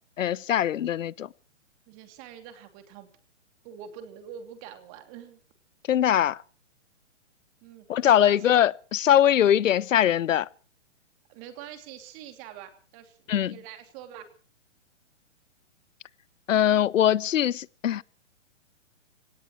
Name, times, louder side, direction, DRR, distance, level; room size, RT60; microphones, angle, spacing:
voice 1, 0.2-1.3 5.9-6.4 7.9-10.5 13.3-13.6 16.5-18.0, left 10 dB, 85° left, 0.7 m, -22 dB
voice 2, 1.9-3.1 3.6-5.4 7.6-8.6 11.3-13.2 13.5-14.3, right 9 dB, 30° right, 2.7 m, -44 dB
25.5 x 18.0 x 3.1 m
hypercardioid pair, 155°, 37 cm